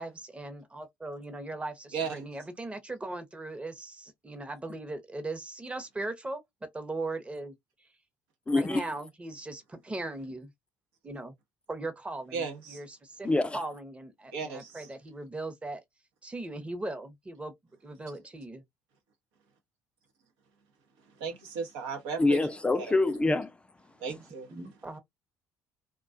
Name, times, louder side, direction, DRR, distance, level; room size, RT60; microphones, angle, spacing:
voice 1, 0.0-7.5 7.8-7.9 8.5-10.5 11.0-11.3 11.7-13.3 13.5-15.8 16.2-17.5 17.8-18.6 23.3-23.4 24.5-25.0, right 2 dB, 20° right, 0.7 m, -39 dB
voice 2, 1.9-2.2 12.3-12.8 14.3-14.9 21.2-22.4 22.7-22.9 24.0-24.5, right 5 dB, 85° right, 0.7 m, -35 dB
voice 3, 8.5-8.8 13.2-13.6 22.2-23.5, left 2 dB, 15° left, 0.4 m, -25 dB
2.3 x 2.2 x 2.4 m
supercardioid pair, 70°, 7 cm